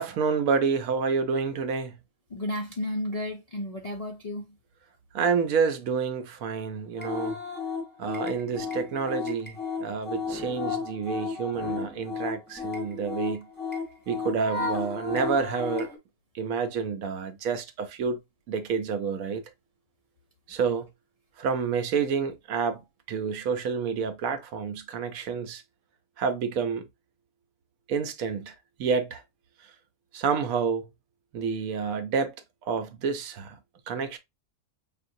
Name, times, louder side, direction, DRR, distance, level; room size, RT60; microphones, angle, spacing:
voice 1, 0.0-2.0 5.1-7.4 8.0-13.5 14.1-15.9 16.3-18.2 18.5-19.4 20.5-20.9 21.4-25.6 26.2-26.9 27.9-28.5 28.8-29.2 30.1-30.9 31.3-32.3 32.6-33.6 33.9-34.2, right 5 dB, 75° right, 1.1 m, -28 dB
voice 2, 2.3-4.5, left 1 dB, 50° left, 0.4 m, -32 dB
sound 1, 7.0-16.0, left 5 dB, 10° left, 0.9 m, -33 dB
5.7 x 2.5 x 2.6 m
omnidirectional pair, 1.5 m